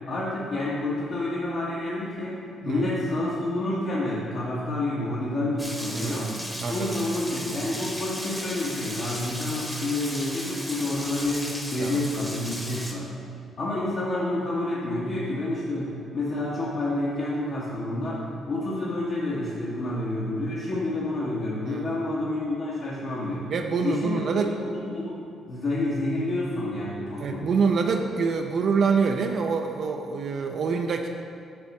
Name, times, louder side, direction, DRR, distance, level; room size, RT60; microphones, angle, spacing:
voice 1, 0.1-6.3 6.7-13.1 13.6-23.5 23.8-25.1 25.5-27.5, left 2 dB, 55° left, -7 dB, 1.2 m, -29 dB
Rain, 5.6-12.9, equal, 10° left, 1.0 m, -36 dB
voice 2, 5.9-7.0 11.8-12.0 21.7-21.9 23.5-24.6 27.2-31.1, right 5 dB, 60° right, 3 dB, 0.4 m, -26 dB
6.6 x 4.1 x 5.9 m, 2.5 s
cardioid pair, 90°, 0 cm